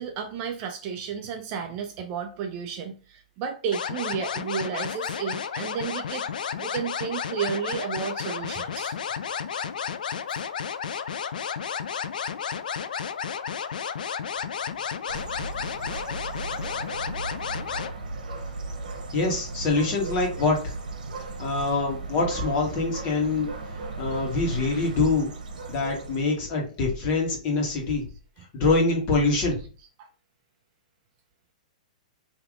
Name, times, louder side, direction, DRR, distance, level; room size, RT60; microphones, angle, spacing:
voice 1, 0.0-6.3 6.6-9.0 29.5-30.1, right 7 dB, 30° right, 0.5 m, -32 dB
sound 1, 3.7-17.9, left 7 dB, 85° left, 0.4 m, -32 dB
sound 2, 15.1-26.3, right 3 dB, 75° right, 1.1 m, -36 dB
voice 2, 19.1-20.7 21.4-23.5 24.0-25.3 25.7-28.0 28.5-29.6, left 3 dB, 30° left, 1.5 m, -24 dB
3.5 x 2.9 x 3.6 m
hypercardioid pair, 155°, 4 cm